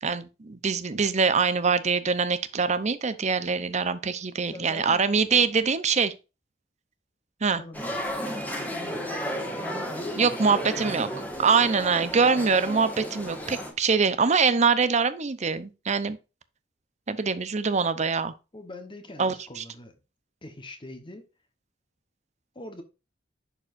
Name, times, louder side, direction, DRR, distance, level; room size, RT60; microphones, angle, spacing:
voice 1, 0.0-6.1 7.4-7.6 10.2-11.1 11.4-16.2 17.1-18.3 19.2-19.6, right 5 dB, 40° right, 0.7 m, -24 dB
voice 2, 4.4-5.5 7.6-8.0 8.3-9.1 9.9-11.3 18.5-20.0 20.4-21.3 22.5-22.8, left 1 dB, 25° left, 1.1 m, -43 dB
sound 1, 7.7-13.7, equal, 10° left, 1.7 m, -33 dB
11.0 x 4.7 x 2.6 m
head